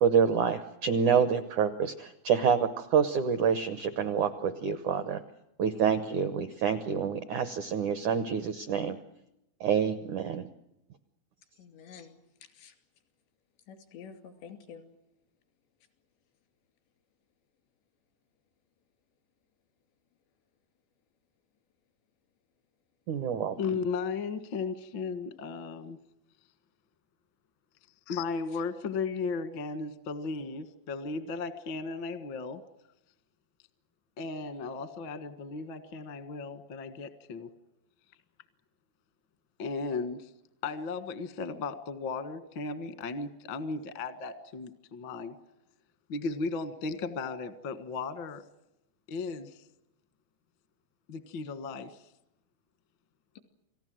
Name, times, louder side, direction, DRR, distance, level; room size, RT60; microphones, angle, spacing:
voice 1, 0.0-5.2 5.6-9.0 9.6-10.5 23.1-23.6, right 7 dB, 80° right, 10 dB, 1.7 m, -27 dB
voice 2, 11.6-12.1 12.6-12.7 13.7-14.8, left 7 dB, 90° left, 8 dB, 5.0 m, -48 dB
voice 3, 23.6-26.0 28.1-32.6 34.2-37.5 39.6-40.3 40.6-45.3 46.1-48.4 49.1-49.5 51.1-52.0, left 4 dB, 70° left, 11 dB, 1.1 m, -35 dB
28.5 x 19.0 x 7.7 m, 0.88 s
omnidirectional pair, 5.0 m